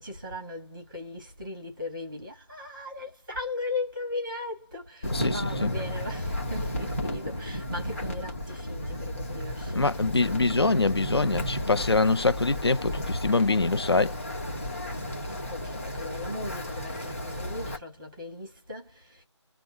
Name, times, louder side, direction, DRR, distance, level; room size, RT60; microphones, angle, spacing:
voice 1, 0.0-10.6 15.0-19.2, left 2 dB, 15° right, 1.1 m, -38 dB
Wind, 5.0-17.8, left 1 dB, 25° left, 1.3 m, -33 dB
voice 2, 5.1-5.7 9.7-14.2, left 3 dB, 55° left, 0.6 m, -24 dB
3.8 x 2.2 x 4.5 m
figure-of-eight pair, 180°, 16 cm